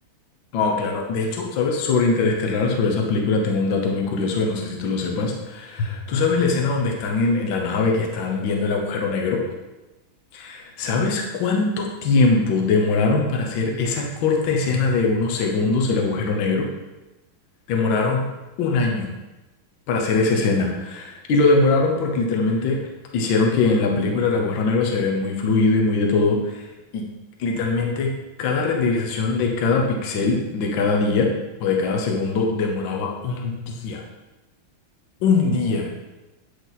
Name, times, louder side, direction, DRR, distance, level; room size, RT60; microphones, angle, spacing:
voice 1, 0.5-9.4 10.4-16.7 17.7-18.3 18.6-19.1 19.9-22.8 23.1-27.1 27.4-31.3 31.6-34.0 35.2-35.9, left 3 dB, 70° left, 1 dB, 1.6 m, -22 dB
9.2 x 4.9 x 4.0 m, 1.1 s
omnidirectional pair, 2.3 m